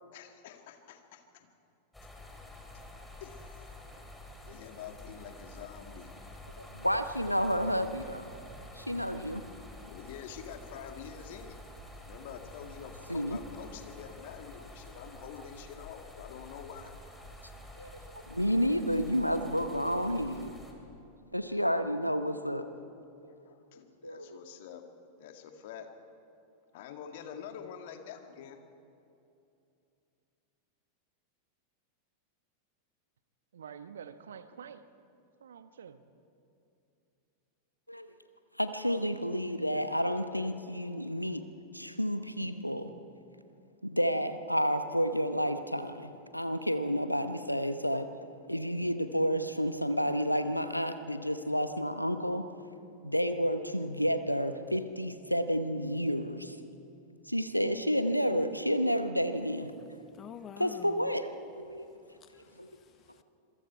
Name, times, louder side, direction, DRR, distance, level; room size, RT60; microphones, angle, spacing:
voice 1, 0.1-1.5 3.2-3.6 3.9-6.1 9.9-11.6 12.1-16.9 23.2-24.8 25.2-25.9 26.7-28.6, left 8 dB, 50° left, 5 dB, 2.0 m, -47 dB
sound 1, 1.9-20.7, left 1 dB, 5° left, 3.2 m, -49 dB
voice 2, 6.6-8.3 8.7-9.4 13.1-13.4 17.8-20.5 21.3-22.7 24.0-24.4 37.9-38.1 38.6-41.4 41.7-42.9 43.8-48.1 48.5-52.5 53.0-56.6 57.3-59.7 60.6-61.9 62.6-62.7, equal, 90° left, 10 dB, 1.0 m, -30 dB
voice 3, 33.5-34.8 35.4-36.0, right 7 dB, 65° right, 12 dB, 1.0 m, -47 dB
voice 4, 60.1-61.1 62.2-63.2, left 9 dB, 30° left, 13 dB, 0.8 m, -49 dB
26.5 x 22.5 x 4.6 m, 2.7 s
figure-of-eight pair, 90°, 0 cm